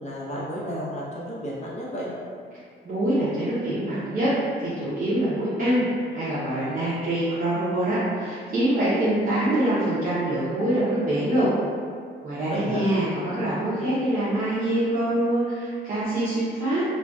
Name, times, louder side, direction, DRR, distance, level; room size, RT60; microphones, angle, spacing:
voice 1, 0.0-2.1 12.5-12.9, equal, 35° left, -6 dB, 0.7 m, -32 dB
voice 2, 2.8-4.3 4.6-11.5 12.2-16.8, right 1 dB, 45° right, -11 dB, 0.6 m, -24 dB
2.5 x 2.2 x 2.3 m, 2.1 s
cardioid pair, 90°, 20 cm